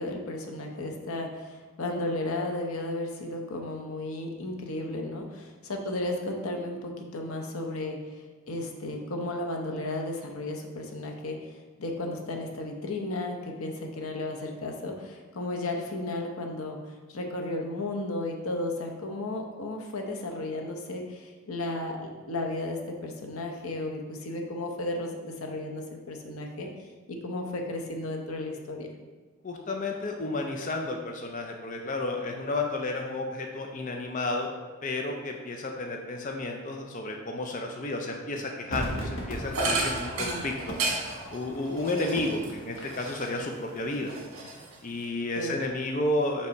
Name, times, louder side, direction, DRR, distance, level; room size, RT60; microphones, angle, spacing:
voice 1, 0.0-11.5 11.8-26.7 27.1-28.9 40.2-40.5 45.4-45.6, left 2 dB, 85° left, 2 dB, 0.8 m, -34 dB
voice 2, 29.4-34.5 34.8-40.8 41.3-44.1 44.8-46.5, left 2 dB, 40° left, 2 dB, 0.5 m, -32 dB
Crowd / Fireworks, 38.7-44.1 44.4-44.5, equal, 60° left, 1.3 m, -38 dB
sound 1, 39.5-43.5 43.9-45.1, right 2 dB, 70° right, 1.5 m, -33 dB
5.5 x 3.4 x 5.2 m, 1.3 s
head